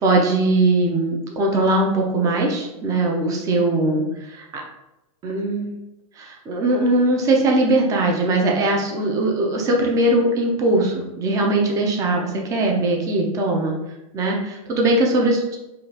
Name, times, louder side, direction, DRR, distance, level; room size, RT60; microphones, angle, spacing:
voice 1, 0.0-4.6 5.2-5.8 6.2-13.7 14.1-15.6, right 2 dB, 20° right, 0 dB, 0.6 m, -20 dB
4.9 x 2.4 x 2.9 m, 0.96 s
supercardioid pair, 155°, 19 cm